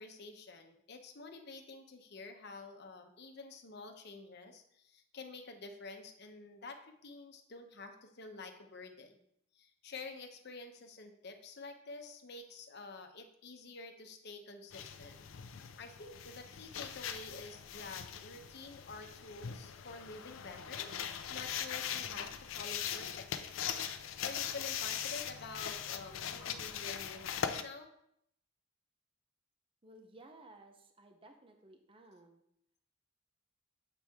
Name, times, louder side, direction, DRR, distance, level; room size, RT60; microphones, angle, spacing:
voice 1, 0.0-9.2 9.5-15.2 15.6-23.6 24.2-27.9, left 3 dB, 55° left, 5 dB, 0.8 m, -49 dB
sound 1, 14.7-27.6, left 8 dB, 80° left, 0.5 m, -41 dB
voice 2, 29.8-32.4, right 2 dB, 25° right, 5 dB, 0.7 m, -57 dB
7.9 x 4.5 x 3.6 m, 0.74 s
head